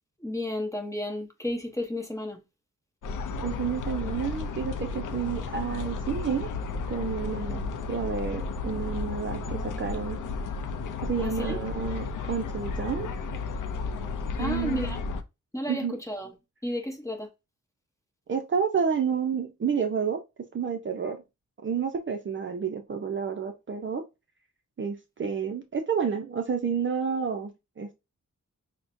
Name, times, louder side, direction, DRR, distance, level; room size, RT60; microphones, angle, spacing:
voice 1, 0.2-2.4 11.2-11.6 14.4-15.0 15.5-16.3 16.6-17.3, left 1 dB, 10° left, 0.8 m, -32 dB
sound 1, 3.0-15.2, left 4 dB, 80° left, 0.5 m, -33 dB
voice 2, 3.4-6.5 6.9-10.2 11.0-13.1 14.4-15.0 15.7-15.9 18.3-20.2 20.5-21.2 21.6-24.0 24.8-27.9, right 6 dB, 40° right, 0.5 m, -30 dB
5.9 x 2.1 x 2.6 m
wide cardioid pair, 140°, 31 cm